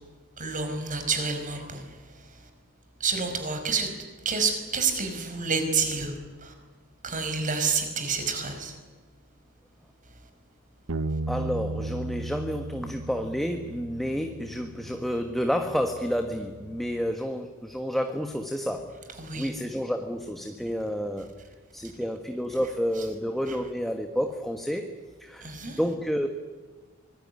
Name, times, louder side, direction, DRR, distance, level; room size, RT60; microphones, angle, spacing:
voice 1, 0.4-1.8 3.0-3.9 4.3-6.1 6.4-6.5 7.0-8.7 19.2-19.5 25.4-25.8, right 5 dB, 40° right, 6 dB, 5.2 m, -28 dB
Bass guitar, 10.9-17.1, right 2 dB, 75° right, 0.9 m, -36 dB
voice 2, 11.3-19.0 19.3-21.3 21.7-26.3, equal, ahead, 5 dB, 1.4 m, -30 dB
25.0 x 21.0 x 9.8 m, 1.4 s
head